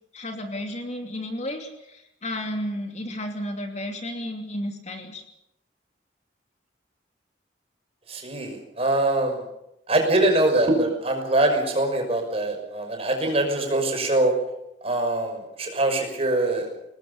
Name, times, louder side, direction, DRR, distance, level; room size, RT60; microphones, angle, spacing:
voice 1, 0.1-5.2, left 1 dB, 40° left, 4 dB, 2.8 m, -32 dB
voice 2, 8.1-9.4 9.9-14.3 14.8-16.7, right 2 dB, 35° right, 4 dB, 5.9 m, -23 dB
24.0 x 20.0 x 6.9 m, 0.85 s
head